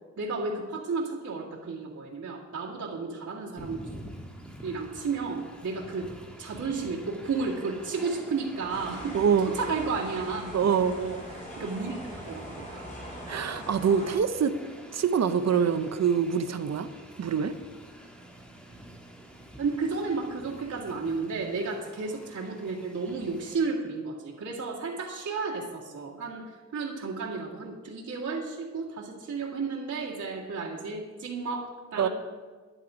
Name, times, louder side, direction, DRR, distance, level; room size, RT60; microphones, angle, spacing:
voice 1, 0.2-3.8 4.6-6.1 6.4-10.5 10.9-12.0 12.2-12.9 19.6-26.4 26.7-32.1, right 4 dB, 90° right, -4 dB, 2.1 m, -33 dB
Train, 3.6-23.6, equal, 5° left, 1.4 m, -47 dB
sound 1, 8.7-14.1, equal, 25° left, 3.5 m, -43 dB
voice 2, 9.1-9.5 10.5-11.0 13.3-14.5 14.9-16.9 17.2-17.5 32.0-32.1, right 7 dB, 65° right, 11 dB, 0.7 m, -25 dB
11.0 x 10.5 x 5.0 m, 1.4 s
wide cardioid pair, 160°, 29 cm